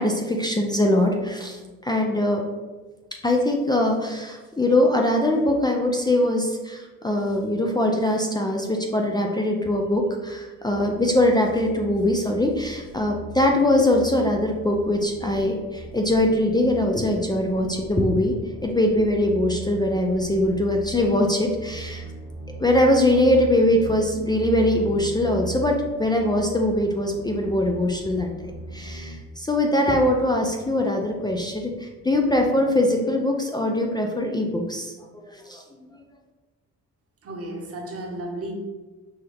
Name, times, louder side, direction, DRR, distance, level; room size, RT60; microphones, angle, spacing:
voice 1, 0.0-2.4 3.2-18.3 18.6-22.0 22.6-28.3 28.7-34.9 35.3-35.9, left 1 dB, 15° left, 1 dB, 0.5 m, -22 dB
sound 1, 10.6-29.2, right 2 dB, 90° left, 1.0 m, -39 dB
voice 2, 37.2-38.5, right 1 dB, 50° right, 1 dB, 1.1 m, -33 dB
5.6 x 2.7 x 3.4 m, 1.3 s
cardioid pair, 90°, 30 cm